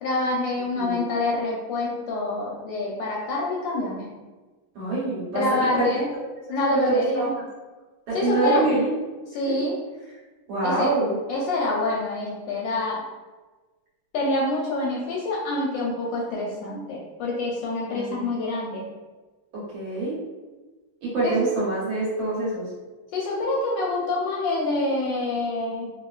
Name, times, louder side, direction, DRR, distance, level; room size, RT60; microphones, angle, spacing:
voice 1, 0.0-4.1 5.3-6.1 6.5-7.3 8.1-8.6 9.3-9.8 10.6-11.0 11.3-13.0 14.1-18.9 21.2-21.3 23.1-25.9, left 2 dB, 75° left, -3 dB, 1.1 m, -26 dB
voice 2, 4.8-5.9 6.7-7.4 8.1-8.9 10.5-11.2 17.9-18.3 19.5-20.2 21.0-22.7, right 3 dB, 70° right, -7 dB, 1.7 m, -25 dB
3.6 x 2.3 x 2.3 m, 1.3 s
omnidirectional pair, 2.3 m